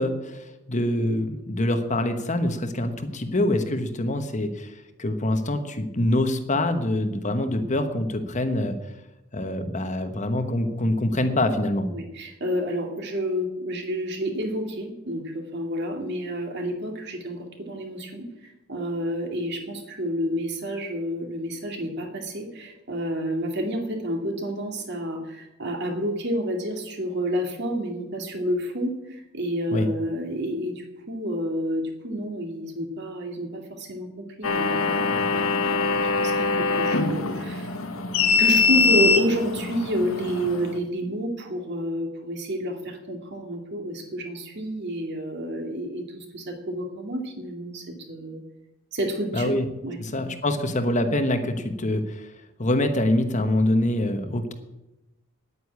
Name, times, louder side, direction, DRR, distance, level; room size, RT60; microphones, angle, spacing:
voice 1, 0.0-8.8 9.3-11.9 29.7-29.9 49.3-49.6 50.0-52.3 52.6-54.5, left 1 dB, 35° left, 8 dB, 1.1 m, -25 dB
voice 2, 11.9-37.8 38.4-48.4 48.9-49.5 49.8-50.0, equal, 50° right, 3 dB, 2.4 m, -29 dB
sound 1, 34.4-40.8, left 4 dB, 70° left, 1.2 m, -23 dB
10.0 x 9.6 x 8.5 m, 0.96 s
head